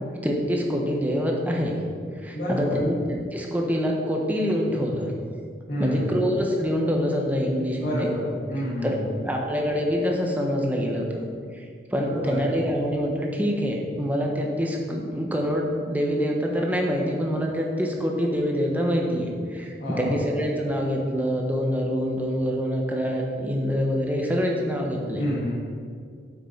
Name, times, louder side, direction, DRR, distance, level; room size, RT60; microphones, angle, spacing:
voice 1, 0.2-1.8 2.1-3.0 3.3-5.1 5.8-8.1 8.8-9.0 9.2-11.0 11.5-11.7 11.9-25.2, equal, 10° right, 0 dB, 1.0 m, -25 dB
voice 2, 2.3-2.8 5.7-6.2 7.7-9.3 12.0-12.4 19.8-20.2 25.2-25.5, equal, 55° left, -11 dB, 2.0 m, -30 dB
8.3 x 6.0 x 4.5 m, 2.2 s
head